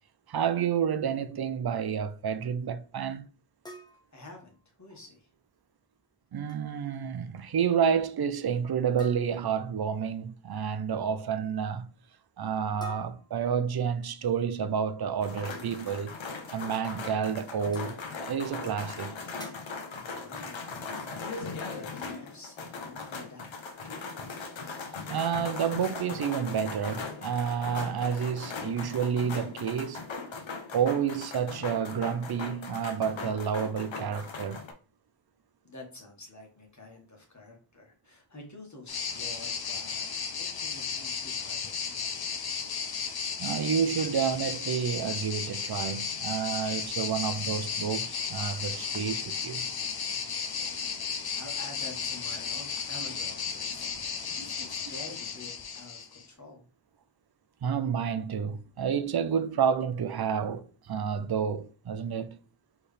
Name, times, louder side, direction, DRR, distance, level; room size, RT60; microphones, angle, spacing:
voice 1, 0.3-3.3 6.3-11.9 12.4-16.2 16.5-18.0 18.2-19.2 25.1-30.1 30.7-34.6 43.4-49.7 57.6-62.4, right 7 dB, 55° right, 0.6 m, -30 dB
sound 1, 3.7-5.0 6.3-6.6 6.9-7.2 7.5-7.6 9.0-9.6 12.8-14.0 16.0-16.1 16.7-16.8 17.6-18.0 19.4-19.9, left 1 dB, 10° left, 0.8 m, -49 dB
voice 2, 4.1-5.3 20.0-23.5 23.8-24.2 35.6-40.1 40.4-42.8 51.2-56.6, left 2 dB, 40° left, 1.6 m, -49 dB
sound 2, 15.2-34.7, left 4 dB, 85° left, 0.8 m, -39 dB
sound 3, 38.9-56.2, left 6 dB, 55° left, 0.6 m, -34 dB
4.5 x 3.4 x 3.3 m
wide cardioid pair, 80°, 45 cm